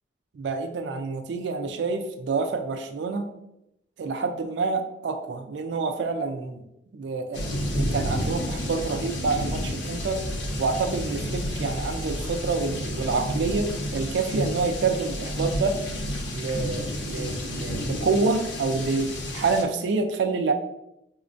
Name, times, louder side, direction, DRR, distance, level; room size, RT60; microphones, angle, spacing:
voice 1, 0.3-3.3 4.0-6.6 6.9-7.4 7.7-10.2 10.6-15.8 16.3-20.5, right 4 dB, 80° right, 7 dB, 0.3 m, -27 dB
sound 1, 7.3-19.6, equal, 90° left, 0.7 m, -30 dB
5.0 x 2.1 x 2.5 m, 0.85 s
head